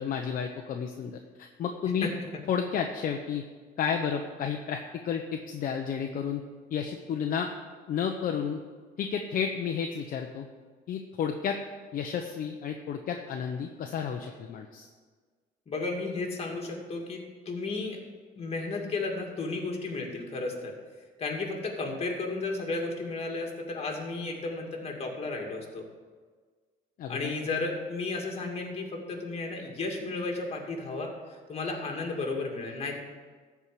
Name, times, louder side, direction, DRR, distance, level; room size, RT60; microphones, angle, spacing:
voice 1, 0.0-2.1 2.5-3.4 3.8-4.8 5.0-6.4 6.7-7.5 7.9-8.6 9.0-10.5 10.9-11.6 11.9-14.9 27.0-27.3, left 7 dB, 55° left, 3 dB, 0.9 m, -31 dB
voice 2, 15.7-18.0 18.4-20.7 21.2-25.9 27.1-33.0, left 3 dB, 35° left, 1 dB, 2.4 m, -33 dB
13.5 x 4.8 x 8.5 m, 1.5 s
cardioid pair, 110°, 17 cm